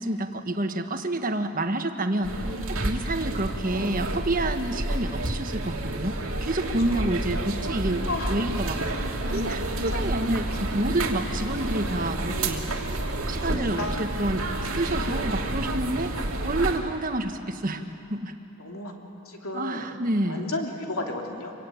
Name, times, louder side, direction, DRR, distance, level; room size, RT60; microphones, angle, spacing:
voice 1, 0.0-2.3 2.7-6.1 6.4-8.8 9.3-12.6 13.3-14.5 14.8-16.2 16.4-17.8 18.1-18.3 19.5-20.5, right 1 dB, 40° right, 6 dB, 1.4 m, -28 dB
sound 1, 2.2-16.8, right 1 dB, 80° right, 2.8 m, -29 dB
voice 2, 8.1-8.4 9.7-10.0 13.5-14.0 18.6-19.0 19.3-19.9 20.3-21.5, left 2 dB, 80° left, 1 dB, 3.0 m, -33 dB
25.0 x 24.0 x 9.3 m, 2.9 s
head